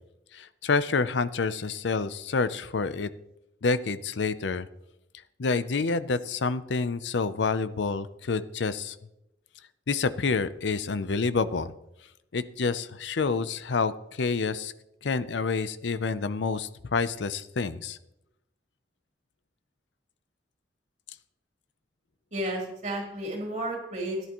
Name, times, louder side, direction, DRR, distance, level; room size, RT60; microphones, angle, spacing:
voice 1, 0.3-3.1 3.6-4.7 5.4-9.0 9.9-11.7 12.3-14.7 15.0-18.0, left 4 dB, 80° left, 14 dB, 0.6 m, -28 dB
voice 2, 22.3-24.3, right 1 dB, 40° right, -1 dB, 3.3 m, -32 dB
16.5 x 11.0 x 3.0 m, 0.86 s
head